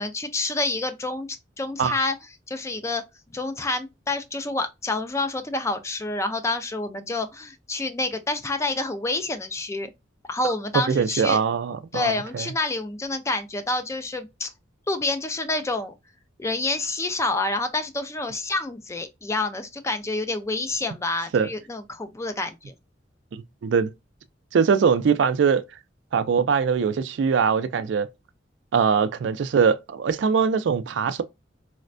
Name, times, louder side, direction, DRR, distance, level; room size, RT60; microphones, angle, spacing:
voice 1, 0.0-2.2 2.5-3.0 3.3-9.9 10.3-11.4 11.9-14.5 14.9-15.9 16.4-22.6, left 2 dB, 15° left, 0.3 m, -28 dB
voice 2, 10.8-12.5 21.3-21.5 23.3-23.9 24.5-25.6 26.1-28.1 28.7-31.2, right 6 dB, 70° right, 0.3 m, -22 dB
4.1 x 2.1 x 2.4 m
head